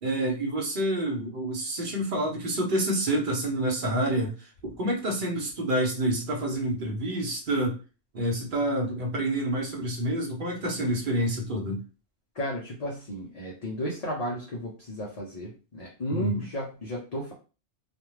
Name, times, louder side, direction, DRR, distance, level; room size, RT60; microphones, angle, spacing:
voice 1, 0.0-7.8 8.1-11.8 16.1-16.5, right 1 dB, 50° right, 0 dB, 0.9 m, -28 dB
voice 2, 12.3-17.3, equal, 40° left, -3 dB, 0.6 m, -33 dB
2.5 x 2.2 x 3.1 m, 0.34 s
omnidirectional pair, 1.2 m